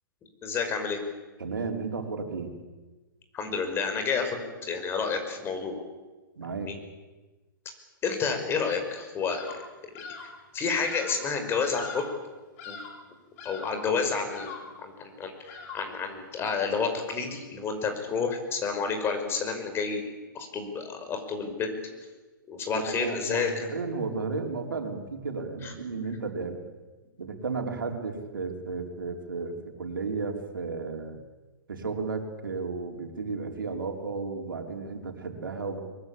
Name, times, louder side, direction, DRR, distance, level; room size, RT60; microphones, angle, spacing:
voice 1, 0.4-1.0 3.3-5.7 6.6-6.7 8.0-9.4 10.5-12.1 12.7-12.8 13.4-21.8 22.5-23.7 25.6-25.7, left 5 dB, 20° left, 6 dB, 5.4 m, -30 dB
voice 2, 1.4-2.6 6.4-6.7 22.7-26.6 27.2-31.2 31.7-35.8, right 4 dB, 70° right, 4 dB, 4.4 m, -33 dB
Bird vocalization bird call bird song, 9.3-9.7 9.9-10.4 10.8-11.3 11.7-12.2 12.6-13.0 13.4-13.9 14.3-14.8 15.5-16.0, left 4 dB, 45° left, 5.3 m, -42 dB
23.5 x 22.5 x 8.5 m, 1.2 s
figure-of-eight pair, 115°, 11 cm